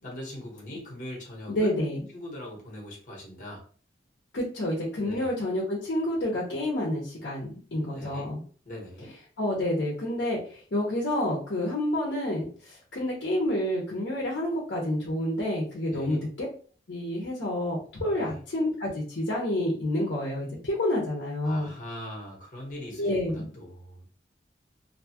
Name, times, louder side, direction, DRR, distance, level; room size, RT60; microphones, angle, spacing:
voice 1, 0.0-1.7 2.1-3.6 5.0-5.3 7.9-8.3 8.7-9.1 15.9-16.2 18.1-18.4 21.4-24.1, left 1 dB, 45° left, -2 dB, 1.1 m, -41 dB
voice 2, 1.5-2.0 4.3-8.4 9.4-16.5 16.9-21.7 22.9-23.5, left 1 dB, 80° left, -3 dB, 0.8 m, -29 dB
2.7 x 2.3 x 2.8 m, 0.42 s
head